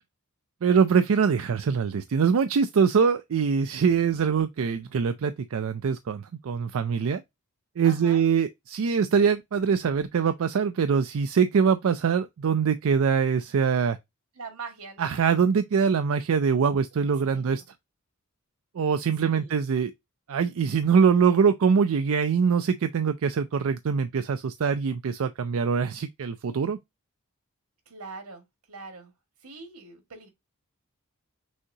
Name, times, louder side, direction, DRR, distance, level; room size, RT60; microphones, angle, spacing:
voice 1, 0.6-7.2 7.8-14.0 15.0-17.6 18.8-19.9 20.3-26.8, right 6 dB, 65° right, 0.4 m, -23 dB
voice 2, 7.8-8.2 14.3-15.2 16.9-17.6 19.2-19.5 27.8-29.1 29.4-30.3, right 4 dB, 85° right, 1.8 m, -43 dB
6.3 x 2.8 x 2.7 m
head